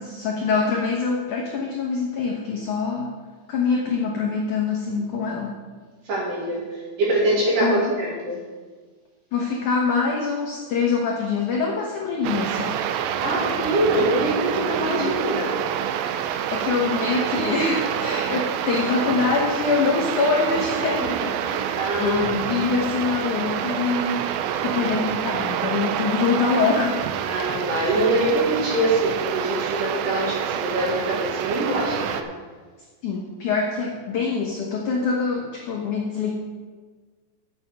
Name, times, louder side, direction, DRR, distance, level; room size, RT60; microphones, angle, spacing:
voice 1, 0.0-3.1 3.5-5.6 7.6-7.9 9.3-12.8 14.9-15.2 16.1-24.3 24.6-27.0 33.0-36.3, left 4 dB, 80° left, -1 dB, 1.8 m, -24 dB
voice 2, 6.1-6.6 7.0-8.4 13.2-15.6 21.7-22.7 27.2-32.2, right 1 dB, 55° right, -4 dB, 3.3 m, -24 dB
sound 1, 12.2-32.2, right 9 dB, 85° right, 2.9 m, -27 dB
9.1 x 7.2 x 6.7 m, 1.4 s
omnidirectional pair, 5.1 m